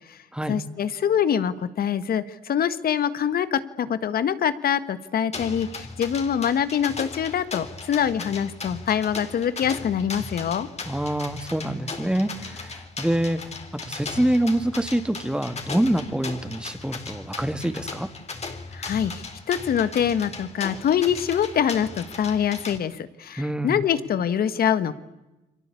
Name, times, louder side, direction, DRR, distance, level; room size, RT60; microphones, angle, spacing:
voice 1, 0.5-10.7 18.7-24.9, left 8 dB, 65° left, 13 dB, 1.6 m, -24 dB
sound 1, 5.3-22.8, left 4 dB, 40° left, 3.9 m, -37 dB
voice 2, 10.9-13.4 13.8-18.1 23.4-23.8, right 1 dB, 5° right, 10 dB, 2.3 m, -26 dB
29.5 x 23.0 x 8.5 m, 1.0 s
supercardioid pair, 65°, 17 cm